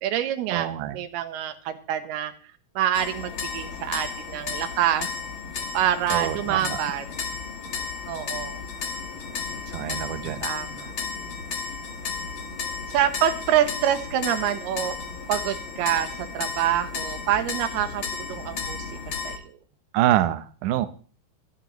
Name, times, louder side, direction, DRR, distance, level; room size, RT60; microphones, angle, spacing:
voice 1, 0.0-2.3 2.8-5.1 5.7-7.3 8.1-8.6 10.4-10.9 12.9-14.9 15.3-18.9 19.2-19.6, right 11 dB, 90° right, 9 dB, 3.0 m, -26 dB
voice 2, 0.5-1.0 6.1-6.8 9.7-10.4 19.9-20.9, right 13 dB, 70° right, 12 dB, 2.0 m, -25 dB
sound 1, 2.9-19.4, left 5 dB, 65° left, 1.2 m, -33 dB
21.5 x 10.5 x 3.1 m, 0.42 s
omnidirectional pair, 4.5 m